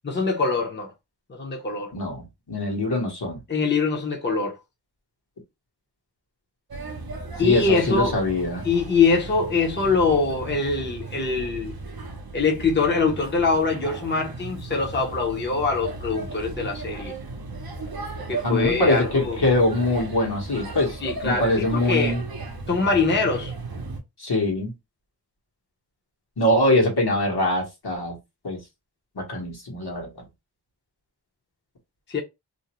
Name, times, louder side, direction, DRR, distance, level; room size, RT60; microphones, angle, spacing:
voice 1, 0.1-0.9 1.3-1.9 3.5-4.5 7.4-8.1 8.6-11.8 12.3-17.1 18.3-19.4 21.0-22.2 22.7-23.5 32.1-32.2, left 4 dB, 25° left, 0.6 m, -23 dB
voice 2, 1.9-3.4 7.4-8.6 18.4-22.2 24.2-24.7 26.4-28.2 28.4-28.6 29.1-30.2, left 1 dB, 65° left, 1.1 m, -23 dB
Male speech man speaking / Child speech kid speaking / Chatter, 6.7-24.0, right 3 dB, 60° right, 0.6 m, -35 dB
2.6 x 2.0 x 2.9 m
wide cardioid pair, 55°, 42 cm